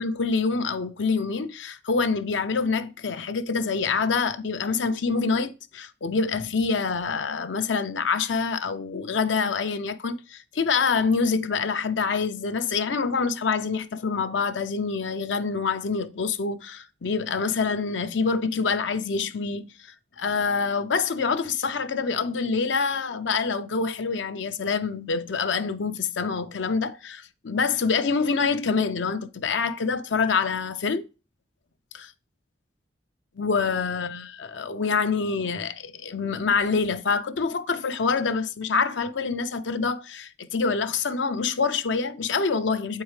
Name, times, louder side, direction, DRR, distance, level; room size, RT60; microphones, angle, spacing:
voice 1, 0.0-31.1 31.9-32.1 33.4-43.0, left 5 dB, 85° left, 0.6 m, -26 dB
8.0 x 4.6 x 3.2 m
head